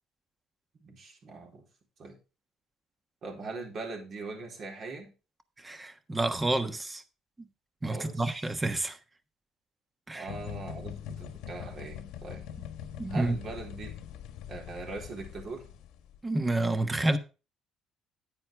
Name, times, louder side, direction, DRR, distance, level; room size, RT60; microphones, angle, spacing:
voice 1, 0.8-1.7 2.0-2.2 3.2-5.1 7.9-8.4 10.1-12.4 13.1-14.0 14.5-15.7, right 3 dB, 50° right, 4.0 m, -41 dB
voice 2, 5.6-7.0 7.8-9.0 10.1-10.3 13.0-13.4 16.2-17.2, right 2 dB, 15° right, 1.3 m, -29 dB
sound 1, 10.3-16.2, left 9 dB, 80° left, 1.4 m, -42 dB
9.7 x 9.6 x 3.5 m
cardioid pair, 100°, 0 cm